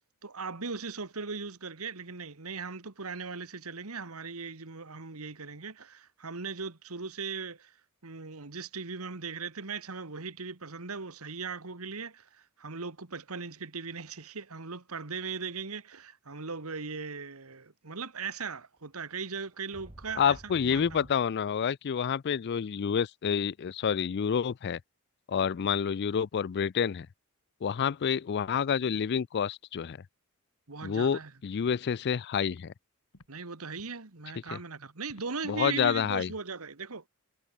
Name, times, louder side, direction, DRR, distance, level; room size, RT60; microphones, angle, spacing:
voice 1, 0.2-7.7 8.0-12.3 12.6-21.1 30.7-31.3 33.3-37.0, right 4 dB, 75° right, 1.7 m, -39 dB
sound 1, 18.8-18.9 19.3-21.1, right 1 dB, 25° right, 1.7 m, -51 dB
voice 2, 20.2-24.8 25.3-27.1 27.6-30.0 30.8-32.7 34.5-34.6 35.4-36.3, left 7 dB, 50° left, 0.4 m, -28 dB
Walk footsteps, 31.1-31.3 31.8-32.0 32.4-32.6 33.1-33.3 33.8-34.0 34.5-34.6 35.1-35.3 35.8-36.0, left 2 dB, 75° left, 3.1 m, -56 dB
head